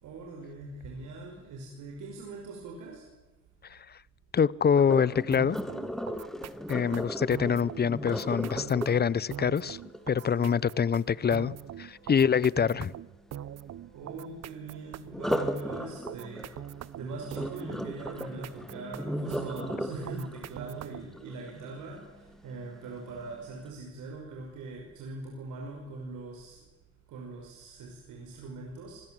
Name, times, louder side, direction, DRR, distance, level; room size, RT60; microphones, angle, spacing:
voice 1, 0.0-3.1 10.3-10.6 13.9-16.5 17.0-26.6 27.1-29.0, right 3 dB, 85° right, 0 dB, 5.3 m, -41 dB
voice 2, 4.3-5.6 6.7-9.8 10.1-12.9, left 7 dB, 35° left, 23 dB, 0.7 m, -25 dB
Sink (filling or washing), 4.7-10.7 15.1-22.1 22.6-23.0 23.4-23.5, equal, ahead, 2.2 m, -36 dB
sound 1, 5.3-21.2, right 10 dB, 60° right, 0.8 m, -42 dB
26.0 x 20.5 x 7.7 m, 1.1 s
cardioid pair, 90°, 30 cm